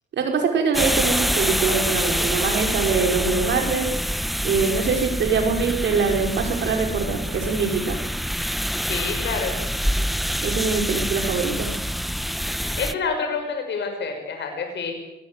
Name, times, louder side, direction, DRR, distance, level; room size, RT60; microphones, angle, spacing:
voice 1, 0.1-3.9 4.4-8.0 10.4-11.8, right 5 dB, 75° right, 4 dB, 5.2 m, -23 dB
sound 1, 0.7-12.9, equal, ahead, 1.0 m, -26 dB
voice 2, 8.9-9.6 12.6-14.9, left 5 dB, 70° left, 4 dB, 6.0 m, -28 dB
23.0 x 19.0 x 8.2 m, 0.94 s
cardioid pair, 80°, 19 cm